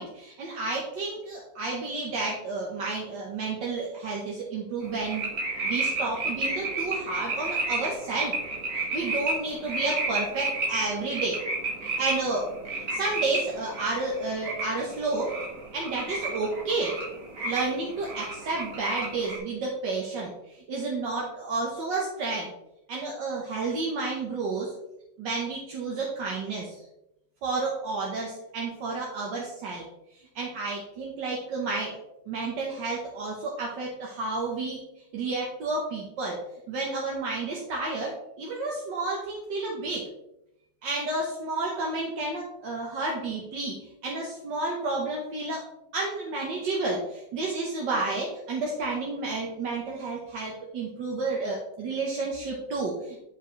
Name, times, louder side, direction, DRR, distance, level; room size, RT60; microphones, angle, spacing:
voice 1, 0.0-5.3 5.6-8.3 8.7-11.4 12.0-12.5 12.9-15.3 15.7-16.9 17.4-22.5 22.9-24.7 25.2-26.8 27.4-29.9 30.4-32.0 32.3-34.8 35.1-36.4 36.7-40.1 40.8-45.6 45.9-53.2, right 3 dB, 80° right, -3 dB, 1.9 m, -31 dB
sound 1, 4.8-19.4, right 3 dB, 55° right, 2.0 m, -32 dB
10.5 x 5.0 x 3.2 m, 0.85 s
omnidirectional pair, 1.9 m